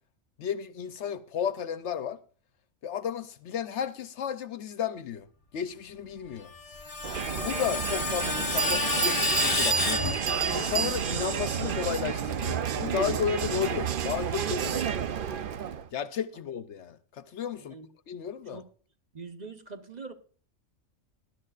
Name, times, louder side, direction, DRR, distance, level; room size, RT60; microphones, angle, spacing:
voice 1, 0.4-2.2 2.8-5.3 5.5-6.5 7.3-10.2 10.5-14.9 15.9-17.8 18.1-18.6, left 8 dB, 70° left, 0.9 m, -33 dB
Screech, 6.5-10.8, left 2 dB, 30° left, 1.2 m, -30 dB
Crowd, 7.0-15.9, right 8 dB, 50° right, 0.7 m, -31 dB
Bell, 7.4-7.5 8.2-8.3 8.6-11.4, right 5 dB, 75° right, 1.6 m, -30 dB
voice 2, 19.1-20.1, right 4 dB, 35° right, 1.1 m, -43 dB
19.5 x 11.5 x 2.4 m
omnidirectional pair, 1.3 m